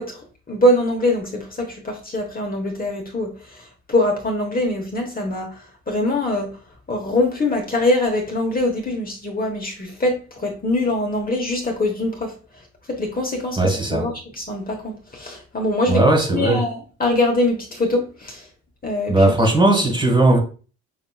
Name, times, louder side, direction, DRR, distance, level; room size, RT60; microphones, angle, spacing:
voice 1, 0.0-6.6 6.9-18.5 18.8-19.5, left 1 dB, 30° left, 1.1 m, -23 dB
voice 2, 13.6-14.0 15.9-16.6 19.1-20.4, right 2 dB, 15° right, 1.6 m, -17 dB
5.8 x 2.8 x 2.3 m
cardioid pair, 90°, 30 cm